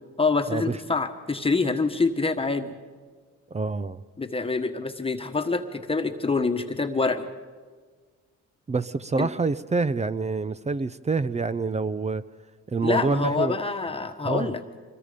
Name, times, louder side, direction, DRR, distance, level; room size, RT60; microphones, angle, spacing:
voice 1, 0.2-2.7 4.2-7.3 9.2-9.3 12.8-14.6, left 4 dB, 20° left, 6 dB, 1.4 m, -26 dB
voice 2, 3.5-4.0 8.7-12.2 12.7-13.6 14.2-14.5, right 4 dB, 20° right, 15 dB, 0.6 m, -27 dB
25.5 x 21.0 x 5.2 m, 1.5 s
cardioid pair, 90°, 30 cm